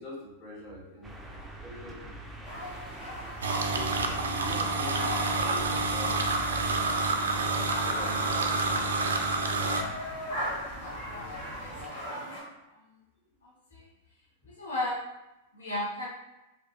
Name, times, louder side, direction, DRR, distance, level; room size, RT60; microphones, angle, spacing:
voice 1, 0.0-2.7 3.6-7.3 7.7-10.2, left 1 dB, 30° left, -7 dB, 1.5 m, -46 dB
sound 1, 1.0-11.9, right 2 dB, 10° right, 0.4 m, -44 dB
sound 2, 2.4-12.4, equal, 65° left, 1.2 m, -38 dB
sound 3, 3.4-9.8, right 3 dB, 80° right, 0.3 m, -28 dB
voice 2, 11.6-12.4 13.7-13.8 14.6-15.0 15.5-16.1, left 1 dB, 80° left, -5 dB, 0.6 m, -35 dB
2.7 x 2.1 x 3.0 m, 0.94 s
hypercardioid pair, 105°, 0 cm